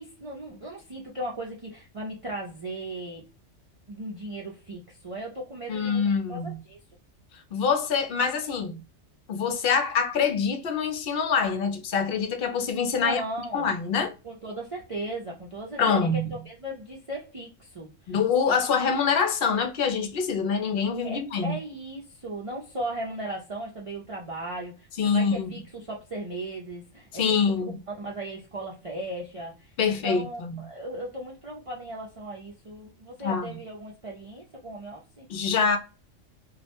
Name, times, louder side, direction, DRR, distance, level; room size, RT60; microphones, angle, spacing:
voice 1, 0.0-3.3 3.9-6.8 13.0-13.7 14.2-18.1 21.0-27.2 27.9-35.3, right 1 dB, 50° right, 0.4 m, -37 dB
voice 2, 5.7-6.6 7.5-8.8 9.3-13.2 13.5-14.1 15.8-16.3 18.1-21.6 25.0-25.5 27.2-27.8 29.8-30.7 33.2-33.5 35.3-35.8, left 5 dB, 60° left, 0.7 m, -25 dB
2.3 x 2.1 x 2.7 m
omnidirectional pair, 1.3 m